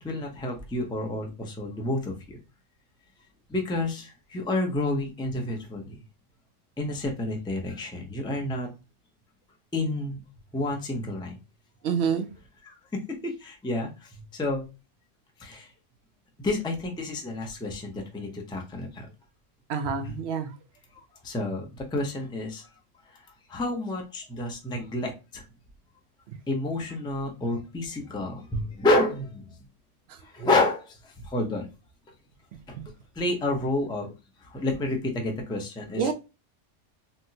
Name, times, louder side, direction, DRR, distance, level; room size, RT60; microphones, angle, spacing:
voice 1, 0.0-2.4 3.5-6.0 6.8-8.7 9.7-10.2 10.5-11.4 12.6-14.6 15.4-15.7 16.4-19.1 20.0-20.2 20.9-22.7 23.5-25.4 26.5-29.5 30.2-31.7 32.7-34.1 34.4-36.1, left 2 dB, 10° left, 0.3 m, -30 dB
voice 2, 11.8-12.3 19.7-20.5 32.8-32.9 36.0-36.1, right 6 dB, 65° right, 0.8 m, -27 dB
4.2 x 2.0 x 2.7 m
omnidirectional pair, 1.3 m